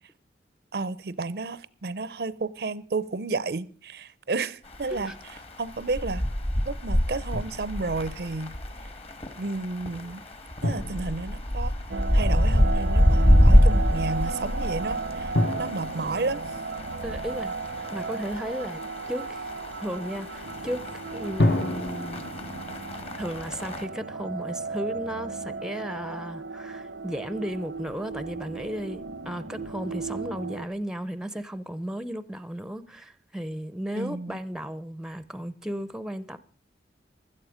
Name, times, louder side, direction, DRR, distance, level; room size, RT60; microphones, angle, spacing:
voice 1, 0.7-5.1 5.6-6.2 6.6-8.5 9.4-10.2 10.6-11.7 12.1-16.4 33.9-34.4, right 3 dB, 65° right, 0.6 m, -32 dB
sound 1, 4.7-23.8, equal, 35° left, 1.4 m, -26 dB
Drum, 7.3-8.1 10.6-12.4 15.3-17.8 21.4-24.5, left 1 dB, 65° left, 1.4 m, -31 dB
sound 2, 11.9-30.6, right 4 dB, 90° right, 0.8 m, -35 dB
voice 2, 17.0-17.5 17.9-18.8 19.1-19.5 19.8-22.3 23.1-36.4, equal, 5° right, 0.6 m, -34 dB
16.5 x 12.0 x 5.0 m
head